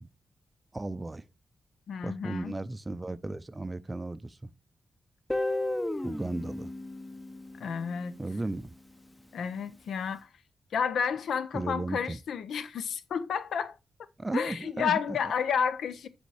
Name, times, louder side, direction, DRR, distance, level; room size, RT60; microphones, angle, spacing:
voice 1, 0.7-1.2 2.0-4.4 6.0-6.7 8.2-8.7 11.5-12.2 14.2-15.0, right 2 dB, 20° right, 0.4 m, -35 dB
voice 2, 1.9-2.5 7.6-8.1 9.3-10.3 10.7-13.8 14.3-16.1, left 7 dB, 80° left, 0.6 m, -31 dB
Guitar, 5.3-8.2, left 1 dB, 15° left, 0.7 m, -34 dB
7.0 x 5.0 x 3.3 m
cardioid pair, 65°, 0 cm